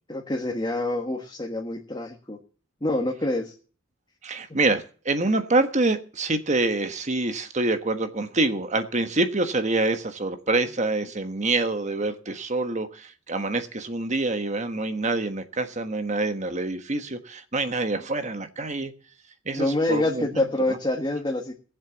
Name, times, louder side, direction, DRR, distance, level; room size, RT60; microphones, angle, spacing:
voice 1, 0.1-2.4 2.8-3.5 19.5-21.5, left 2 dB, 20° left, 1.5 m, -26 dB
voice 2, 4.2-18.9 19.4-20.3 20.7-20.8, right 2 dB, 35° right, 1.3 m, -26 dB
18.5 x 7.5 x 7.2 m
head